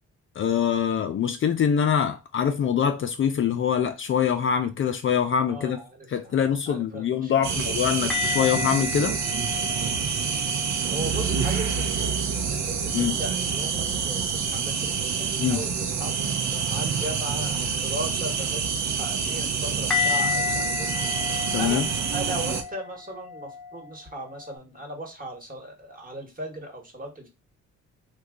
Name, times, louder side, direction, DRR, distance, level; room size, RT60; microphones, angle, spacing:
voice 1, 0.4-5.8 6.1-9.2 12.9-13.1 15.4-15.6 21.5-21.9, left 8 dB, 45° left, 0.4 m, -24 dB
voice 2, 5.5-6.4 6.7-7.6 10.9-16.1 16.5-21.1 21.6-21.8 22.1-27.3, right 1 dB, 25° right, 1.3 m, -37 dB
sound 1, 7.4-22.6, right 6 dB, 65° right, 0.7 m, -27 dB
sound 2, 8.1-12.0 12.4-13.0 19.9-24.6, left 6 dB, ahead, 0.8 m, -32 dB
3.0 x 2.3 x 3.6 m
cardioid pair, 90°, 30 cm